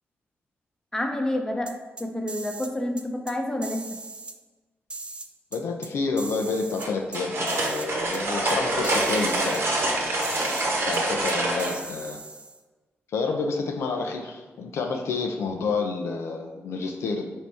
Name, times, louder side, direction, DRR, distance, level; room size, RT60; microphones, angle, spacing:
voice 1, 0.9-1.7 2.0-3.9, left 1 dB, 15° left, 3 dB, 0.7 m, -28 dB
sound 1, 1.7-2.7 3.0-3.3 3.6-4.3 4.9-5.9 6.2-7.2 7.5-8.2 8.5-8.6 8.8-9.6 10.2-10.6 10.9-11.0 11.3-12.6, right 3 dB, 25° right, 0.4 m, -39 dB
voice 2, 5.5-10.4 10.8-12.2 13.1-17.2, left 4 dB, 80° left, 3 dB, 0.5 m, -29 dB
sound 2, 6.8-11.7, right 2 dB, 70° right, 0.9 m, -26 dB
4.2 x 2.7 x 4.7 m, 1.3 s
cardioid pair, 60°, 5 cm